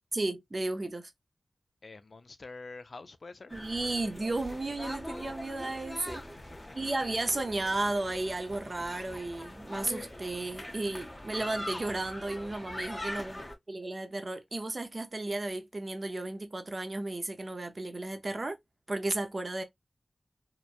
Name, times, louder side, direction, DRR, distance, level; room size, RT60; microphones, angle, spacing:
voice 1, 0.1-1.1 3.5-6.3 6.7-13.4 13.7-18.6 18.9-19.6, right 2 dB, 50° right, 0.5 m, -34 dB
voice 2, 1.8-3.6 6.2-6.7 13.1-13.5, left 3 dB, 65° left, 0.4 m, -48 dB
sound 1, 3.5-13.6, left 1 dB, 25° left, 0.8 m, -42 dB
2.9 x 2.1 x 2.3 m
wide cardioid pair, 60°, 0 cm